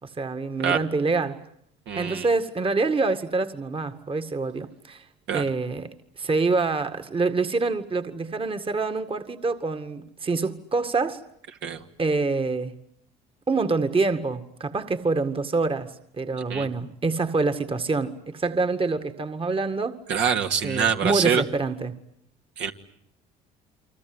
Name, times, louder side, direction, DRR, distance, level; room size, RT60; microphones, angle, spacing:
voice 1, 0.0-1.4 1.9-5.0 5.3-11.2 12.0-12.7 13.5-20.0 20.6-21.9, right 3 dB, 25° right, 2.0 m, -26 dB
voice 2, 1.9-2.3 5.3-5.4 11.6-11.8 16.5-16.7 20.1-21.4 22.6-22.7, right 7 dB, 65° right, 2.5 m, -24 dB
29.0 x 25.0 x 8.0 m
supercardioid pair, 75°, 20 cm